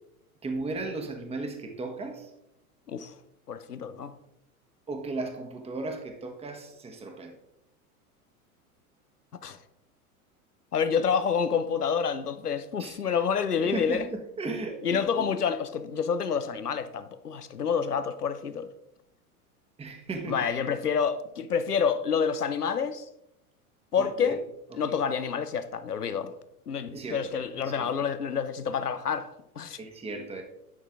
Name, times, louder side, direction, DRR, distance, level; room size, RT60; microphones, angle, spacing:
voice 1, 0.4-2.3 4.9-7.4 12.8-13.2 13.6-15.4 19.8-20.5 24.0-24.4 24.7-25.0 26.9-28.1 29.8-30.4, right 3 dB, 15° right, 1.3 m, -36 dB
voice 2, 3.5-4.1 9.4-9.6 10.7-14.1 14.8-18.7 20.3-23.1 23.9-24.4 24.7-26.3 26.7-29.8, left 6 dB, 90° left, 0.7 m, -28 dB
11.0 x 6.2 x 3.6 m
figure-of-eight pair, 85°, 45 cm